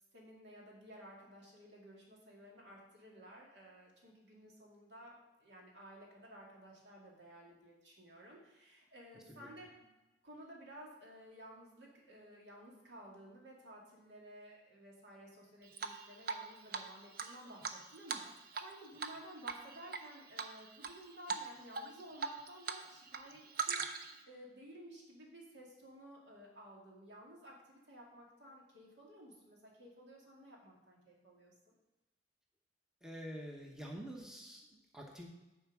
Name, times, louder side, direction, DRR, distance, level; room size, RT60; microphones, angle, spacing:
voice 1, 0.1-9.9 10.2-31.7, equal, 70° right, -2 dB, 2.3 m, -55 dB
Drip, 15.8-16.4 16.7-16.8 17.2-18.7 19.0-19.2 19.5-20.0 20.4-20.9 21.3-21.5 21.7-22.8 23.1-24.2, right 5 dB, 55° right, 0.6 m, -39 dB
voice 2, 33.0-35.3, equal, 5° right, 0 dB, 0.9 m, -47 dB
9.0 x 4.6 x 6.0 m, 1.1 s
head